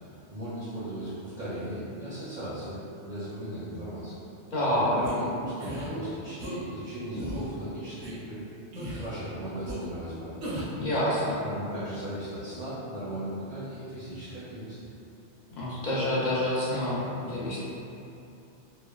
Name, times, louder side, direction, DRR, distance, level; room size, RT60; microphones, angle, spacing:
voice 1, 0.3-4.1 4.7-8.4 8.7-10.5 11.4-14.8, right 1 dB, 50° right, -10 dB, 0.6 m, -37 dB
voice 2, 4.5-5.0 10.8-11.4 15.6-17.7, left 1 dB, 55° left, -7 dB, 0.5 m, -27 dB
sound 1, 5.0-5.1 5.6-5.9 6.4-6.5 7.1-7.5 8.0-8.1 8.7-9.1 9.6-9.8 10.4-10.8, right 1 dB, 85° right, 0.9 m, -36 dB
3.1 x 2.1 x 2.2 m, 2.8 s
omnidirectional pair, 1.2 m